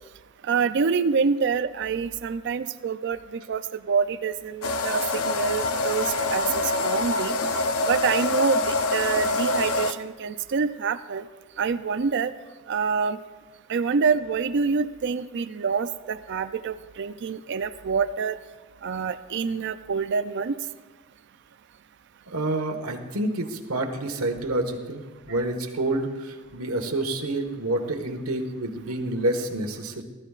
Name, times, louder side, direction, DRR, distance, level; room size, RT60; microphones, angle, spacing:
voice 1, 0.4-3.6 3.9-7.4 7.8-11.2 11.6-12.3 12.7-13.2 13.7-18.3 18.8-20.6, right 5 dB, 55° right, 11 dB, 0.4 m, -26 dB
sound 1, 4.6-9.9, left 2 dB, 75° left, 0.7 m, -25 dB
voice 2, 22.3-30.0, right 1 dB, 80° right, 5 dB, 1.4 m, -28 dB
19.0 x 13.5 x 2.5 m, 1.4 s
head